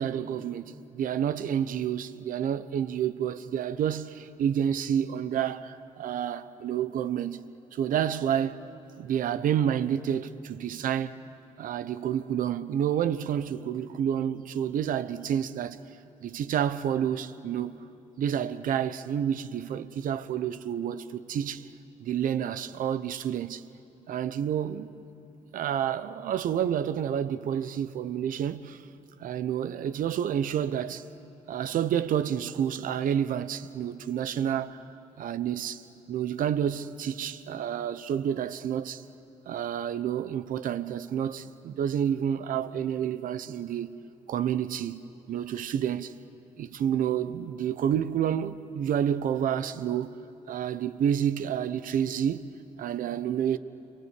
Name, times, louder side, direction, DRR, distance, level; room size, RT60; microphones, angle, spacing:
voice 1, 0.0-7.4 7.7-8.6 9.0-11.1 11.6-15.8 16.2-17.8 18.2-21.7 22.0-23.6 24.1-24.9 25.5-28.8 29.2-31.0 31.5-34.8 35.2-35.8 36.1-39.0 39.5-43.9 44.3-46.1 46.6-50.1 50.5-52.5 52.8-53.6, right 9 dB, 75° right, 0.9 m, -29 dB
27.5 x 23.5 x 8.4 m
cardioid pair, 70°, 14 cm